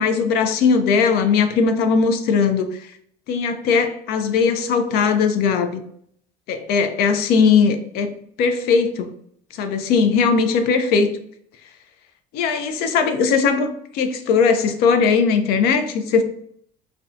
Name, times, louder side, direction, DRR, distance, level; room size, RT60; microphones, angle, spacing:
voice 1, 0.0-2.9 3.3-5.8 6.5-9.1 9.6-11.1 12.3-13.7 13.9-16.2, left 5 dB, 65° left, 8 dB, 0.4 m, -19 dB
2.5 x 2.1 x 2.5 m, 0.66 s
supercardioid pair, 100°, 18 cm